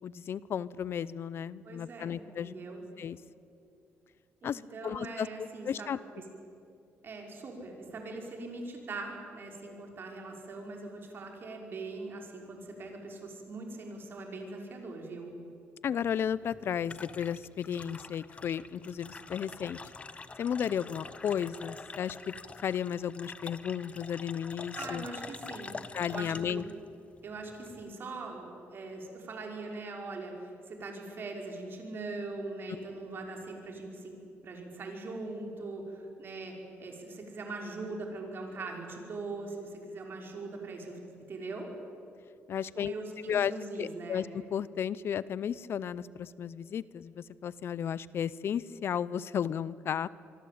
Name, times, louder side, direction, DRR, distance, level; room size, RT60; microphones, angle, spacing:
voice 1, 0.0-2.5 3.0-3.2 4.4-6.0 15.8-19.8 20.4-22.3 22.6-25.1 25.9-26.6 42.5-42.9 43.3-50.1, left 8 dB, 55° left, 19 dB, 0.6 m, -34 dB
voice 2, 1.6-2.8 4.4-6.2 7.0-15.3 24.7-25.7 26.1-26.7 27.2-34.2 34.4-41.0 41.3-41.7 42.8-44.3, right 3 dB, 50° right, 1 dB, 5.6 m, -41 dB
sound 1, 16.2-27.9, left 4 dB, 25° left, 1.1 m, -46 dB
25.5 x 23.5 x 8.7 m, 2.6 s
cardioid pair, 110°, 5 cm